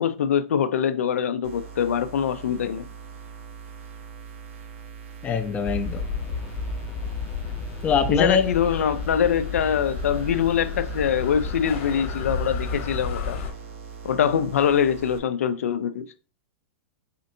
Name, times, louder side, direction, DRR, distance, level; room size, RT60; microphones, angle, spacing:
voice 1, 0.0-2.9 8.1-13.4 14.0-16.1, left 8 dB, 90° left, 0.4 m, -23 dB
sound 1, 1.4-15.2, right 6 dB, 70° right, 0.7 m, -42 dB
voice 2, 5.2-6.1 7.8-8.9, left 6 dB, 20° left, 0.4 m, -24 dB
sound 2, 5.6-13.5, left 5 dB, 55° left, 1.0 m, -31 dB
4.3 x 2.6 x 2.6 m
hypercardioid pair, 135°, 7 cm